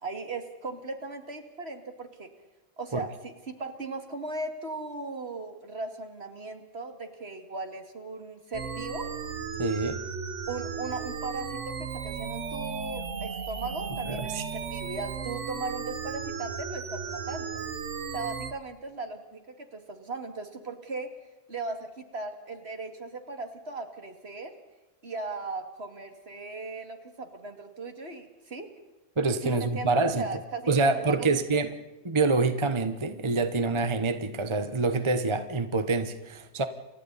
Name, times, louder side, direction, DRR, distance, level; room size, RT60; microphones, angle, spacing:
voice 1, 0.0-2.3 2.8-9.1 10.5-17.6 18.1-21.1 21.5-24.5 25.0-28.7 29.4-31.3, right 3 dB, 55° right, 6 dB, 2.6 m, -37 dB
sound 1, 8.5-18.5, right 6 dB, 70° right, 1.6 m, -35 dB
voice 2, 9.6-10.0 14.0-14.4 29.2-30.3 30.7-31.7 32.0-36.6, right 3 dB, 25° right, 10 dB, 1.0 m, -26 dB
29.0 x 24.0 x 4.1 m, 1.1 s
omnidirectional pair, 1.3 m